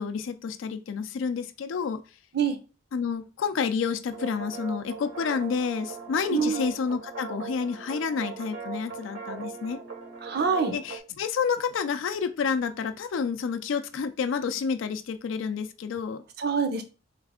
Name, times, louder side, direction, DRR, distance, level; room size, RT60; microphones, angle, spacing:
voice 1, 0.0-2.0 2.9-9.8 10.7-16.2, left 6 dB, 70° left, 8 dB, 0.4 m, -29 dB
sound 1, 4.1-11.0, right 5 dB, 75° right, 1.2 m, -39 dB
voice 2, 6.3-6.6 10.2-10.8 16.4-16.8, right 5 dB, 55° right, 9 dB, 0.6 m, -25 dB
3.3 x 3.2 x 3.5 m, 0.33 s
head